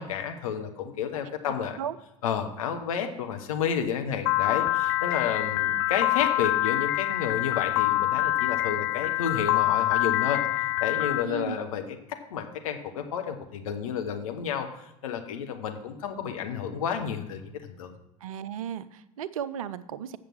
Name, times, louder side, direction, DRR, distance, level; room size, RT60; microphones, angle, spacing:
voice 1, 0.0-1.8 2.2-10.4 10.8-11.8 12.3-14.7 15.0-17.9, left 8 dB, 65° left, 5 dB, 1.1 m, -31 dB
Piano, 4.3-11.2, left 16 dB, 50° left, 0.4 m, -25 dB
voice 2, 11.2-11.6 18.2-20.2, right 8 dB, 65° right, 15 dB, 0.5 m, -35 dB
8.4 x 6.6 x 5.9 m, 0.86 s
figure-of-eight pair, 70°, 19 cm